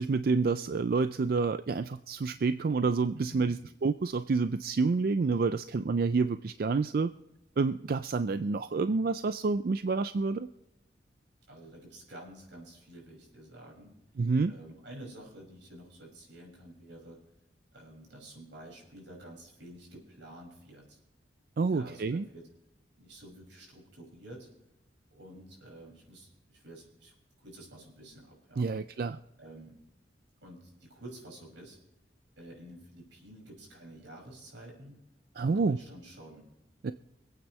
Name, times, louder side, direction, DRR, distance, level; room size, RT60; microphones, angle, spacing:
voice 1, 0.0-7.1 7.6-10.5 14.2-14.5 21.6-22.3 28.6-29.2 35.4-35.8 36.8-36.9, right 4 dB, 55° right, 11 dB, 0.4 m, -28 dB
voice 2, 3.2-3.6 11.5-13.9 14.5-17.2 17.7-21.0 21.7-22.5 23.0-24.5 25.1-28.7 29.4-29.8 30.4-31.8 32.4-35.0 35.3-36.5, right 1 dB, 85° right, -1 dB, 5.9 m, -50 dB
25.5 x 9.0 x 3.2 m, 0.90 s
head